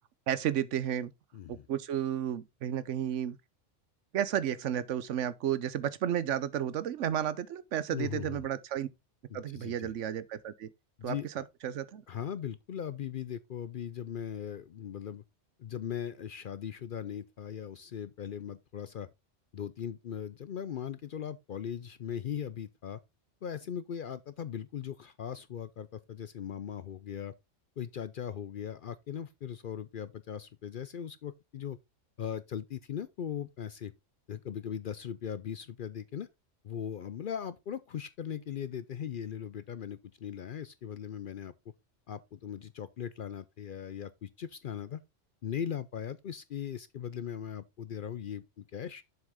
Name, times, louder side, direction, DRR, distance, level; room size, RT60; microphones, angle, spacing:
voice 1, 0.3-1.1 1.5-3.4 4.1-8.9 9.3-10.7 11.0-12.0, right 10 dB, 80° right, 1.0 m, -32 dB
voice 2, 1.3-1.7 7.9-8.4 9.3-9.9 11.0-11.5 12.1-15.2 15.6-19.1 19.5-23.0 23.4-27.3 27.8-31.8 32.2-33.9 34.3-36.3 36.6-41.5 42.1-45.0 45.4-49.0, left 8 dB, 55° left, 0.6 m, -39 dB
7.3 x 6.2 x 3.6 m
omnidirectional pair, 1.3 m